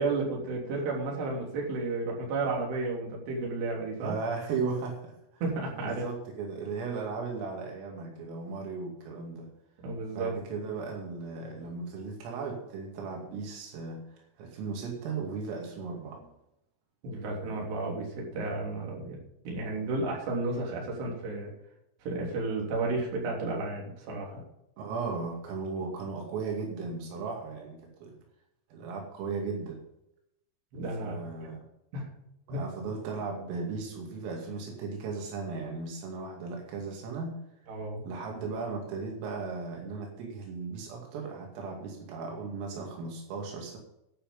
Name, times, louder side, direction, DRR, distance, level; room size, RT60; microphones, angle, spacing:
voice 1, 0.0-4.2 5.4-6.1 9.8-10.3 17.0-21.5 22.0-24.4 30.7-31.2 31.9-32.1 32.5-32.6 37.7-38.0, right 3 dB, 60° right, -1 dB, 5.2 m, -32 dB
voice 2, 4.0-5.4 5.8-9.5 10.1-16.3 24.8-28.2 28.7-29.8 31.0-31.6 32.5-37.4 38.0-43.8, right 4 dB, 85° right, 0 dB, 5.0 m, -36 dB
11.5 x 10.0 x 5.4 m, 0.82 s
omnidirectional pair, 5.8 m